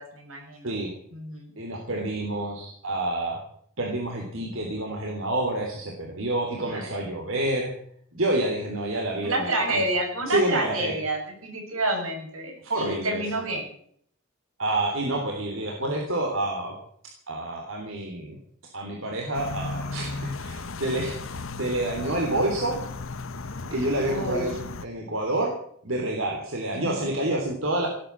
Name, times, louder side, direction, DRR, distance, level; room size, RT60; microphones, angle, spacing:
voice 1, 0.0-0.7 1.1-1.5 6.6-6.9 9.2-13.7 24.1-24.4 26.7-27.2, right 1 dB, 90° right, 2 dB, 7.3 m, -29 dB
voice 2, 1.6-3.4 3.8-7.7 8.1-9.8 10.3-10.9 12.6-13.2 14.6-16.8 17.3-18.4 18.7-22.8 23.6-24.5 24.8-25.5 25.8-27.9, right 1 dB, 70° right, 1 dB, 3.4 m, -28 dB
sound 1, 19.3-24.9, left 3 dB, 70° left, 1.0 m, -35 dB
18.5 x 9.0 x 8.7 m, 0.63 s
head